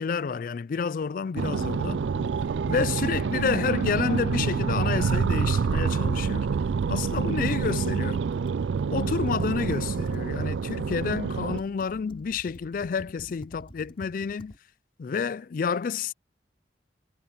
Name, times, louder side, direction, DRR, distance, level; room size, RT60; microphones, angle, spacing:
voice 1, 0.0-2.3 2.7-6.5 6.9-8.2 8.9-14.5 15.0-16.1, left 5 dB, 50° left, 0.3 m, -29 dB
sound 1, 1.4-11.6, right 5 dB, 85° right, 0.4 m, -27 dB
Computer keyboard, 5.2-8.9 9.2-14.6, equal, 30° left, 4.7 m, -49 dB
head